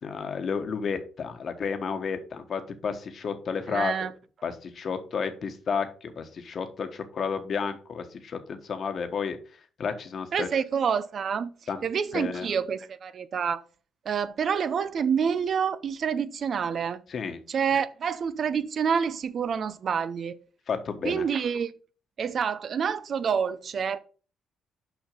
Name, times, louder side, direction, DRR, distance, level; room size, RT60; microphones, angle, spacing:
voice 1, 0.0-4.1 4.4-9.4 9.8-10.5 11.7-11.8 12.1-12.5 17.1-17.4 20.7-21.2, left 6 dB, 55° left, 1.3 m, -31 dB
voice 2, 3.7-4.1 10.3-11.5 11.8-13.6 14.0-17.0 17.5-20.4 21.0-21.7 22.2-24.0, right 7 dB, 55° right, 0.6 m, -27 dB
6.1 x 5.5 x 5.5 m
cardioid pair, 90°, 0 cm